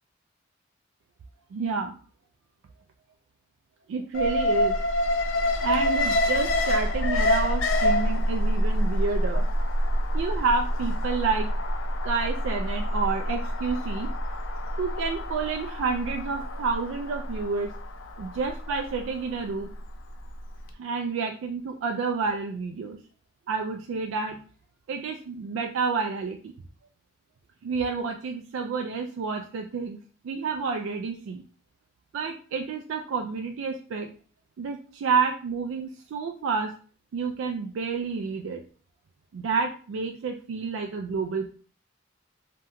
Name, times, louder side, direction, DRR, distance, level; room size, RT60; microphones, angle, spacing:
voice 1, 1.5-1.9 3.9-4.8 5.6-9.5 10.1-11.5 12.0-14.1 14.8-17.7 18.2-19.7 20.8-23.0 23.5-24.4 24.9-26.4 27.6-30.0 30.2-31.4 32.1-34.1 34.6-36.7 37.1-38.6 39.3-41.5, right 5 dB, 75° right, 4 dB, 0.3 m, -29 dB
Alarm, 4.1-20.2 20.6-20.7, left 1 dB, 70° left, 0.4 m, -27 dB
2.8 x 2.2 x 3.5 m, 0.41 s
head